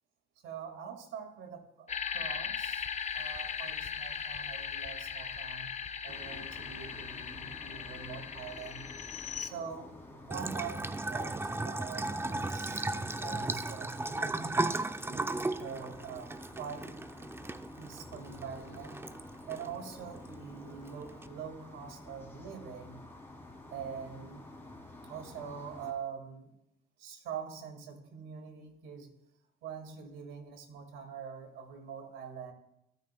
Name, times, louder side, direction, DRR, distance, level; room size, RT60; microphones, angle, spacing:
voice 1, 0.4-2.9 3.1-5.7 6.0-8.9 9.4-12.9 13.2-14.7 15.1-17.0 17.8-19.0 19.5-23.0 23.7-24.5 25.1-26.5 27.0-29.1 29.6-32.5, right 7 dB, 85° right, 5 dB, 2.2 m, -44 dB
sound 1, 1.9-9.5, left 7 dB, 35° left, 0.7 m, -38 dB
sound 2, 6.1-25.9, left 2 dB, 10° left, 2.9 m, -51 dB
Bathtub (filling or washing) / Trickle dribble, 10.3-21.3, right 2 dB, 10° right, 0.5 m, -36 dB
26.5 x 9.2 x 2.3 m, 0.80 s
cardioid pair, 75°, 20 cm